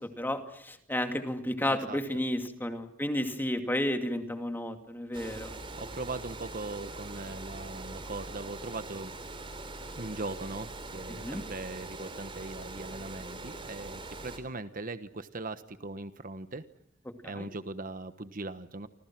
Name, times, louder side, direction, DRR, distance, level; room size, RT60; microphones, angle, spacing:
voice 1, 0.0-5.5 11.1-11.4 17.2-17.5, left 1 dB, 10° left, 6 dB, 2.4 m, -32 dB
voice 2, 1.7-2.0 5.8-9.1 10.0-16.6 17.2-18.9, right 2 dB, 45° right, 11 dB, 1.2 m, -40 dB
Water, 5.1-14.4, right 2 dB, 25° right, 3.7 m, -42 dB
29.5 x 26.0 x 6.1 m, 0.71 s
head